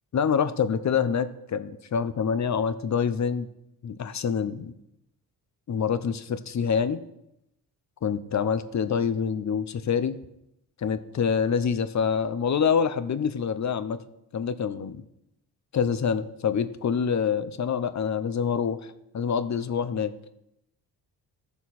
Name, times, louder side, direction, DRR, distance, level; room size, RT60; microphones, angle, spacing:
voice 1, 0.1-3.5 3.8-4.7 5.7-7.0 8.0-10.2 10.8-14.0 14.3-15.0 15.7-20.1, left 7 dB, 45° left, 12 dB, 0.9 m, -26 dB
15.5 x 7.0 x 4.3 m, 0.84 s
cardioid pair, 100°, 40 cm